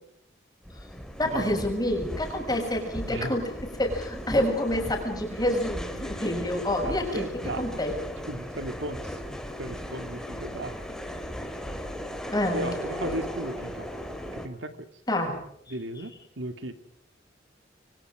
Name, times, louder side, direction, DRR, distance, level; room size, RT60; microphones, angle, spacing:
sound 1, 0.6-14.5, equal, 5° left, 2.8 m, -37 dB
voice 1, 1.2-3.5 3.8-7.3 7.6-7.9 12.3-12.7 15.1-15.4, left 1 dB, 20° left, 3 dB, 6.8 m, -27 dB
voice 2, 6.8-7.7 8.3-9.0 9.6-10.7 12.5-13.9 14.3-14.9 15.7-16.7, right 1 dB, 80° right, 8 dB, 2.5 m, -35 dB
27.0 x 24.5 x 5.0 m, 0.70 s
head